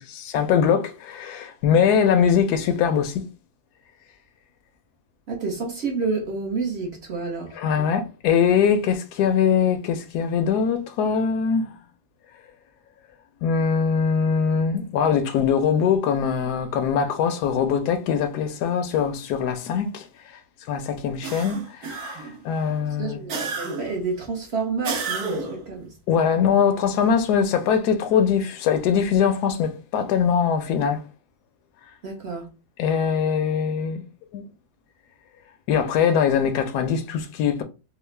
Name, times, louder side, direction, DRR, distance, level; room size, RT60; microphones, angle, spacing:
voice 1, 0.0-3.2 7.5-11.7 13.4-20.1 20.7-23.2 26.1-31.0 32.8-34.0 34.3-34.4 35.7-37.6, left 7 dB, 80° left, 1.1 m, -22 dB
voice 2, 5.3-7.9 23.0-25.9 32.0-32.5, right 4 dB, 50° right, 0.9 m, -29 dB
sound 1, 21.2-22.4 23.3-24.0 24.8-25.7, right 4 dB, 70° right, 1.3 m, -30 dB
3.7 x 2.1 x 3.2 m
omnidirectional pair, 1.7 m